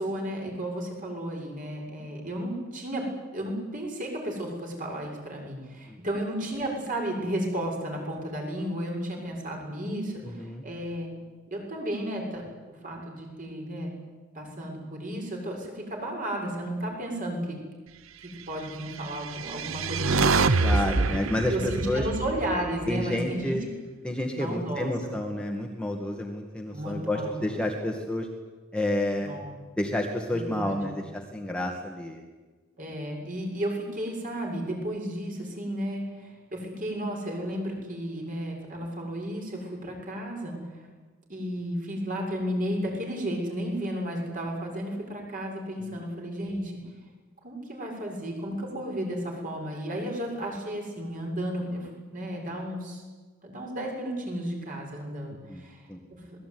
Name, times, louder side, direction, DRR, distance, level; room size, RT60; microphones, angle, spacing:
voice 1, 0.0-3.0 3.3-11.1 11.5-13.9 14.3-17.6 18.5-21.0 21.5-23.6 24.4-25.1 26.7-27.6 29.2-29.6 30.3-31.0 32.8-40.9 41.3-46.7 47.4-53.0 53.4-55.8, right 1 dB, 40° right, 1 dB, 7.0 m, -33 dB
voice 2, 10.2-10.6 20.6-22.1 22.9-23.6 24.0-28.3 28.7-29.3 29.8-32.2 45.9-46.0 55.5-55.6 55.9-56.0, left 1 dB, 5° left, 1 dB, 2.1 m, -30 dB
sound 1, 19.1-23.4, right 3 dB, 70° right, 1.0 m, -26 dB
26.5 x 20.0 x 9.6 m, 1.3 s
head